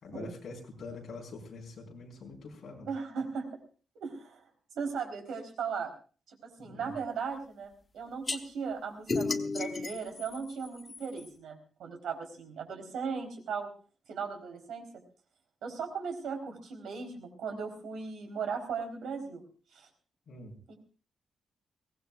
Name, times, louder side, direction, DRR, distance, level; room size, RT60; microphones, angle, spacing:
voice 1, 0.0-2.9 6.6-6.9 20.3-20.5, left 3 dB, 45° left, 0 dB, 4.9 m, -44 dB
voice 2, 2.9-3.5 4.0-4.4 4.7-5.9 6.3-13.7 14.1-14.9 15.6-19.4 19.7-19.9 20.7-20.8, right 5 dB, 85° right, 4 dB, 4.2 m, -37 dB
sound 1, 8.3-8.4 9.1-11.3, left 3 dB, 25° left, 1.0 m, -33 dB
22.5 x 18.0 x 2.5 m, 0.38 s
wide cardioid pair, 180°, 0 cm